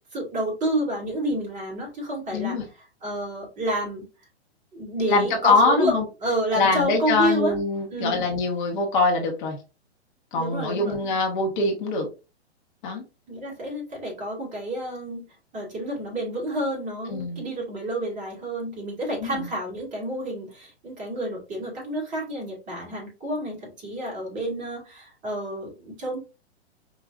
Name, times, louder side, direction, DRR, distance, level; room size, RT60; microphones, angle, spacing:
voice 1, 0.1-2.6 3.0-4.1 4.7-5.9 6.2-7.5 7.9-8.3 10.3-11.0 13.3-15.2 15.5-26.2, right 1 dB, 20° right, -2 dB, 2.3 m, -29 dB
voice 2, 2.3-2.6 5.1-6.0 6.5-9.6 10.3-12.1 12.8-13.0 17.1-17.4 19.1-19.5, left 3 dB, 45° left, 1 dB, 1.3 m, -23 dB
5.0 x 2.7 x 2.6 m, 0.29 s
figure-of-eight pair, 115°, 34 cm